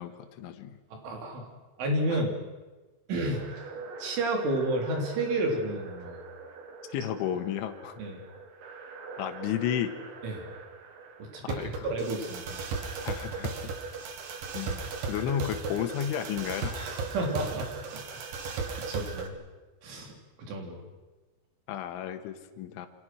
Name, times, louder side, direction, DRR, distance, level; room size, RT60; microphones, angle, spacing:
voice 1, 0.0-0.8 2.1-2.2 6.9-8.0 9.2-10.0 11.4-11.9 13.0-13.5 14.5-16.8 21.7-22.9, left 10 dB, 80° left, 6 dB, 3.8 m, -33 dB
voice 2, 0.9-1.5 1.8-2.3 3.1-3.4 4.0-6.2 8.0-8.2 10.2-10.5 11.2-12.4 16.7-18.2 18.5-19.3 19.8-20.8, right 1 dB, 75° right, 2 dB, 6.1 m, -31 dB
sound 1, 3.3-19.3, right 4 dB, 55° right, 3.2 m, -38 dB
28.0 x 25.5 x 6.2 m, 1.2 s
omnidirectional pair, 5.6 m